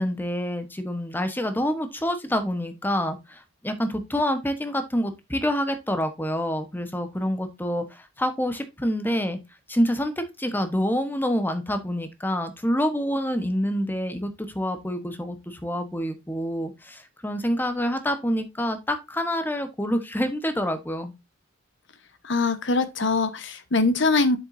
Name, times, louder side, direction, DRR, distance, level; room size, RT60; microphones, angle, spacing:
voice 1, 0.0-9.4 9.7-10.1 10.4-21.1, equal, 10° left, 1.1 m, -27 dB
voice 2, 22.2-24.4, left 3 dB, 60° left, 1.1 m, -22 dB
7.6 x 7.3 x 2.6 m
head